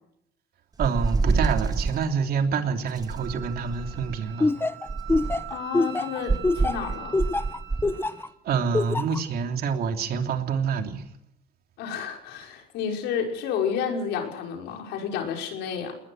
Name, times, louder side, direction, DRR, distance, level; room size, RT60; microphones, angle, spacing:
sound 1, 0.8-2.0 3.0-4.2 4.9-5.6 6.3-7.9, right 4 dB, 20° right, 2.0 m, -27 dB
voice 1, 0.8-4.5 8.4-11.0, right 6 dB, 65° right, 6 dB, 3.1 m, -27 dB
Wind instrument woodwind instrument, 3.2-8.3, right 13 dB, 80° right, 4.5 m, -42 dB
Laughter, 4.4-8.3 8.7-9.2, left 2 dB, 15° left, 0.9 m, -24 dB
voice 2, 5.5-7.2 11.8-16.0, left 7 dB, 85° left, 3 dB, 5.6 m, -30 dB
20.5 x 20.5 x 6.3 m, 0.77 s
cardioid pair, 110°, 17 cm